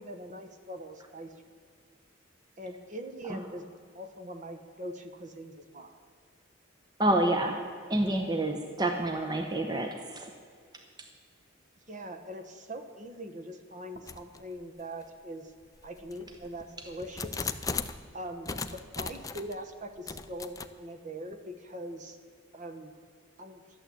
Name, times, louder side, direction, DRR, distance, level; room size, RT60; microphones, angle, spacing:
voice 1, 0.0-1.3 2.6-3.7 3.9-6.0 11.9-15.5 15.8-17.5 18.1-22.2 22.5-22.9 23.4-23.6, right 1 dB, 40° right, 7 dB, 1.1 m, -42 dB
voice 2, 7.0-7.6 7.9-10.3, right 1 dB, 20° right, 4 dB, 0.9 m, -28 dB
sound 1, 14.1-14.4 15.0-15.1 15.8-18.0 18.4-19.5 20.1-20.7, left 4 dB, 15° left, 0.5 m, -37 dB
12.5 x 8.8 x 8.6 m, 2.2 s
head